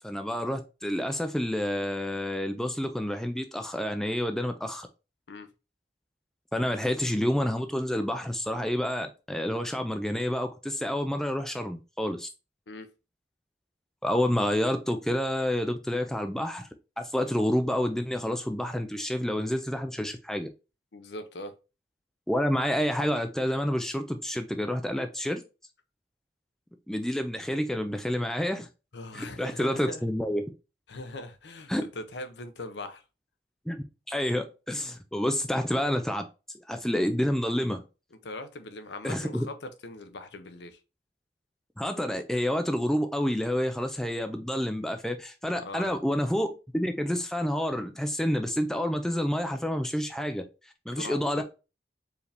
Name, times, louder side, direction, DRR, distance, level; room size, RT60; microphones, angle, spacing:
voice 1, 0.0-4.9 6.5-12.3 14.0-16.7 17.0-20.5 22.3-25.4 26.9-28.7 29.1-30.4 31.7-31.8 33.7-36.2 36.7-37.8 39.0-39.5 41.8-50.4 50.9-51.4, equal, 5° left, 0.3 m, -29 dB
voice 2, 20.9-21.5 28.9-30.0 30.9-33.0 38.2-40.8 45.5-46.0 50.9-51.4, left 2 dB, 70° left, 0.7 m, -40 dB
4.8 x 2.7 x 3.3 m
head